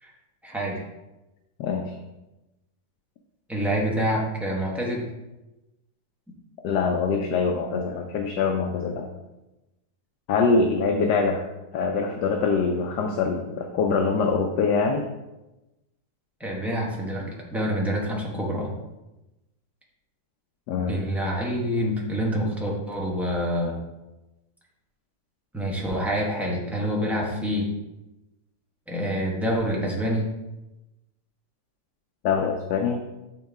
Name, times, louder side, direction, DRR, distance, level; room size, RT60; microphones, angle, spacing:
voice 1, 0.4-0.8 3.5-5.0 16.4-18.7 20.9-23.8 25.5-27.7 28.9-30.3, equal, ahead, -4 dB, 0.9 m, -27 dB
voice 2, 1.6-1.9 6.6-9.1 10.3-11.4 11.7-15.1 20.7-21.0 32.2-33.0, left 4 dB, 75° left, 3 dB, 1.2 m, -24 dB
8.4 x 3.7 x 3.5 m, 1.0 s
omnidirectional pair, 1.9 m